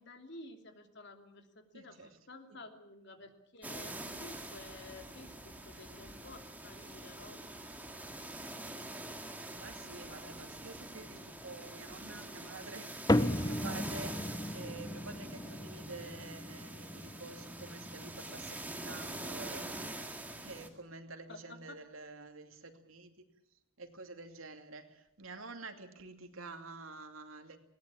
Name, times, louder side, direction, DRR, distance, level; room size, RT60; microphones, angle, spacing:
voice 1, 0.0-7.4 21.3-21.8, left 2 dB, 55° left, 6 dB, 2.9 m, -52 dB
voice 2, 1.7-2.2 2.5-2.6 9.6-23.2 23.5-27.6, right 3 dB, 85° right, 6 dB, 2.6 m, -49 dB
sound 1, 3.6-20.7, right 1 dB, 10° right, 2.1 m, -45 dB
sound 2, 13.1-19.8, left 1 dB, 20° left, 0.8 m, -36 dB
20.5 x 18.0 x 8.8 m, 0.79 s
head